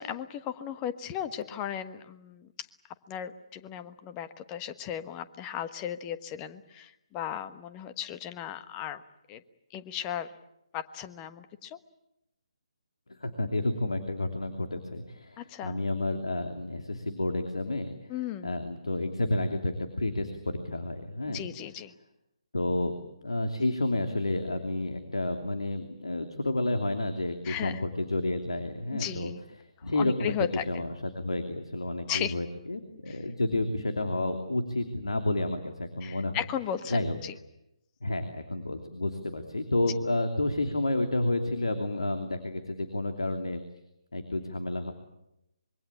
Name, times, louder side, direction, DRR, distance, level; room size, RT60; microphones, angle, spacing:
voice 1, 0.0-2.5 3.1-9.0 9.3-9.4 9.7-10.3 10.7-11.8 15.4-15.8 18.1-18.6 21.3-21.9 27.4-27.8 28.9-29.4 30.0-30.6 32.1-32.3 33.1-33.2 36.0-37.3, left 10 dB, 20° left, 11 dB, 1.2 m, -36 dB
voice 2, 13.2-18.1 18.4-21.4 22.5-22.9 23.2-29.3 29.8-30.3 30.7-36.4 36.9-37.2 38.0-43.6 44.1-44.9, left 2 dB, 70° left, 6 dB, 2.9 m, -30 dB
26.0 x 23.0 x 8.7 m, 0.86 s
figure-of-eight pair, 140°, 3 cm